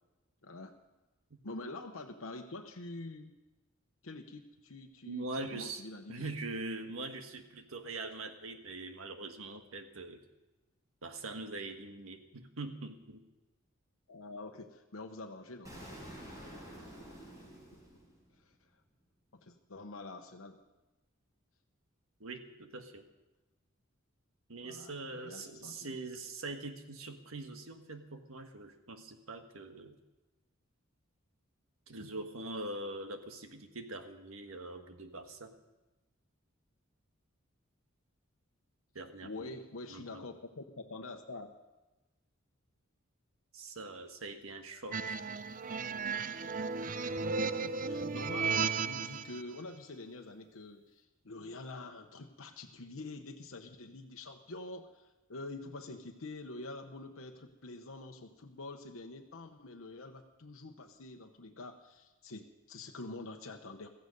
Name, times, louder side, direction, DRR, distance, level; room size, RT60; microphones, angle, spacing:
voice 1, 0.4-0.7 1.4-3.4 4.0-6.3 6.8-7.0 14.1-15.9 16.4-17.0 18.4-18.8 19.4-20.6 24.6-25.9 39.2-41.5 47.4-63.9, left 2 dB, 75° left, 3 dB, 1.0 m, -46 dB
voice 2, 5.1-5.8 6.1-10.2 11.0-13.2 22.2-23.0 24.5-30.0 31.9-35.5 38.9-39.5 39.9-40.2 43.5-45.2, right 2 dB, 80° right, 6 dB, 1.5 m, -43 dB
Explosion, 15.6-18.6, equal, 15° right, 4.7 m, -49 dB
sound 1, 44.9-49.4, right 5 dB, 40° right, 0.5 m, -34 dB
16.0 x 14.5 x 5.3 m, 1.1 s
head